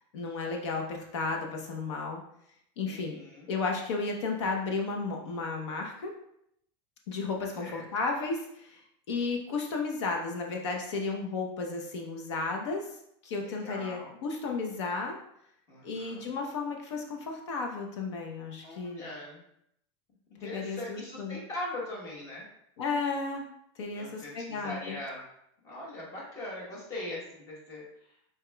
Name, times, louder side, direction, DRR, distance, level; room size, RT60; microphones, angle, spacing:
voice 1, 0.1-2.2 2.8-3.2 3.5-6.1 7.1-8.8 9.1-13.0 13.2-15.2 15.8-19.0 20.4-21.4 22.8-23.4 23.7-25.0, left 4 dB, 75° left, 1 dB, 0.9 m, -33 dB
voice 2, 2.9-3.5 7.6-7.8 13.6-14.2 15.7-16.3 18.6-19.4 20.4-22.4 23.9-25.2 25.6-27.9, left 1 dB, 20° left, -4 dB, 1.2 m, -40 dB
4.9 x 4.5 x 2.3 m, 0.74 s
supercardioid pair, 175°, 15 cm